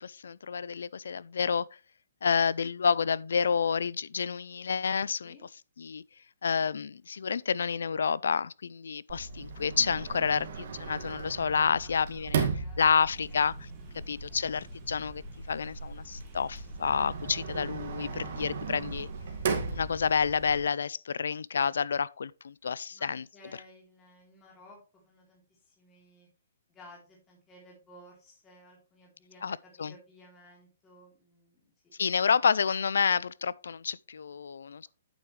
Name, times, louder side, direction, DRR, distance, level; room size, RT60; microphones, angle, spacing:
voice 1, 0.0-1.6 2.2-5.3 5.8-6.0 6.4-12.5 12.8-13.7 13.9-15.2 15.5-19.1 19.7-23.2 29.4-29.9 32.0-34.8, left 6 dB, 80° left, 0.4 m, -29 dB
Sliding door, 9.1-20.6, right 6 dB, 50° right, 2.0 m, -37 dB
voice 2, 11.8-13.0 13.3-13.5 14.3-14.4 18.1-18.7 22.9-24.8 25.0-26.3 26.7-31.6, left 1 dB, 15° left, 3.5 m, -56 dB
sound 1, 13.1-20.6, equal, 15° right, 2.1 m, -46 dB
8.8 x 7.0 x 3.2 m
hypercardioid pair, 160°, 0 cm